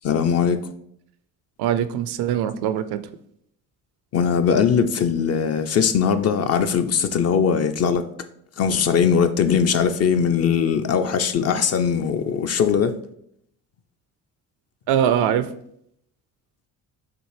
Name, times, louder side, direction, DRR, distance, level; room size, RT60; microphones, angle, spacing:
voice 1, 0.0-0.6 4.1-8.0 8.6-13.0, left 7 dB, 35° left, 0.4 m, -20 dB
voice 2, 1.6-3.0 14.9-15.5, right 9 dB, 65° right, 0.5 m, -22 dB
6.1 x 2.5 x 3.2 m
hypercardioid pair, 55°, 43 cm